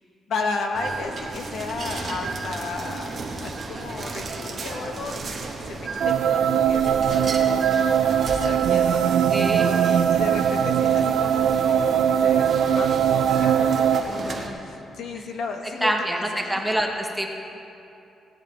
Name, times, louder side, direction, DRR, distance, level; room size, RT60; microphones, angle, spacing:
voice 1, 0.3-3.1 3.4-7.6 7.9-9.5 9.8-16.6, left 3 dB, 65° left, 3 dB, 1.2 m, -34 dB
sound 1, 0.7-14.5, right 3 dB, 35° right, 1.1 m, -34 dB
sound 2, 6.0-14.0, right 8 dB, 90° right, 0.4 m, -20 dB
voice 2, 9.3-9.7 14.5-14.6 15.1-15.2 15.8-17.3, right 1 dB, 5° right, 2 dB, 0.7 m, -26 dB
18.0 x 10.0 x 3.9 m, 2.8 s
cardioid pair, 180°, 0 cm